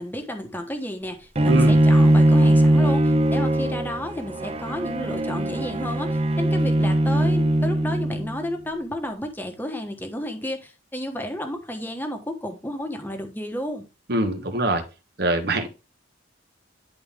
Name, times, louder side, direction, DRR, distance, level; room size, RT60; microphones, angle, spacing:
voice 1, 0.0-13.9, left 1 dB, 10° left, 5 dB, 1.2 m, -32 dB
Bowed string instrument, 1.4-8.4, right 1 dB, 35° right, 0.6 m, -20 dB
voice 2, 1.5-1.8 14.1-14.8 15.2-15.7, right 2 dB, 60° right, 7 dB, 1.3 m, -23 dB
10.5 x 4.3 x 3.5 m, 0.28 s
head